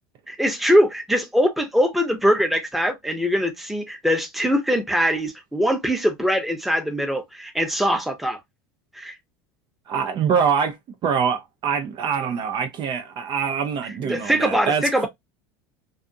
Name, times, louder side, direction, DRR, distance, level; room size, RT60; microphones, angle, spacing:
voice 1, 0.3-8.4 8.9-9.2 14.0-15.1, equal, ahead, 0.8 m, -22 dB
voice 2, 9.9-10.8 11.0-15.1, right 7 dB, 45° right, 0.5 m, -24 dB
2.5 x 2.4 x 2.5 m
supercardioid pair, 110°, 11 cm